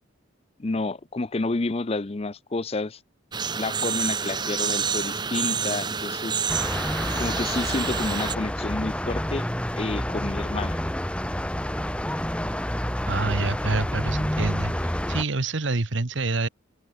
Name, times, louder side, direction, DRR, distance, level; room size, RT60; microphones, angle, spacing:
voice 1, 0.6-3.0 3.6-6.4 7.2-9.5 9.8-10.8, left 2 dB, 30° left, 0.6 m, -29 dB
blue-gray gnatcatcher, 3.3-8.4, right 6 dB, 20° right, 1.0 m, -28 dB
sound 1, 6.5-15.2, equal, 5° left, 1.2 m, -29 dB
voice 2, 13.0-16.5, right 3 dB, 70° right, 1.2 m, -27 dB
head